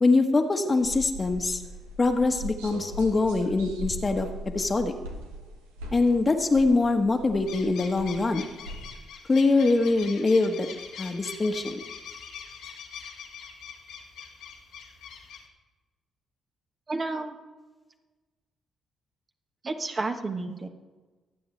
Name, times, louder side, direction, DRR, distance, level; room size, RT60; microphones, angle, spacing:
voice 1, 0.0-1.6 2.0-4.9 5.9-8.4 9.3-10.7 11.0-11.8, left 3 dB, 35° left, 5 dB, 1.3 m, -23 dB
sound 1, 0.8-9.0, equal, 85° right, 1.1 m, -40 dB
sound 2, 7.5-15.5, left 6 dB, 70° left, 1.5 m, -43 dB
voice 2, 16.9-17.3 19.6-20.7, right 3 dB, 40° right, 4 dB, 1.3 m, -31 dB
24.5 x 8.6 x 3.3 m, 1.3 s
hypercardioid pair, 45°, 0 cm